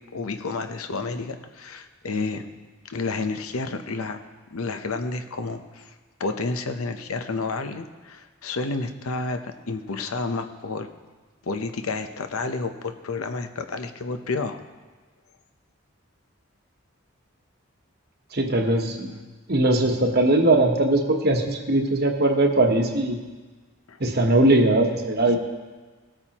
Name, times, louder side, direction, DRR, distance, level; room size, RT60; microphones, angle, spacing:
voice 1, 0.1-2.5 2.9-4.2 4.5-5.9 6.2-10.9 11.4-14.6 23.9-24.0, left 3 dB, 85° left, 7 dB, 0.8 m, -30 dB
voice 2, 18.3-19.1 19.5-23.2 24.0-25.4, right 2 dB, 50° right, 3 dB, 1.1 m, -20 dB
18.5 x 8.8 x 3.0 m, 1.3 s
head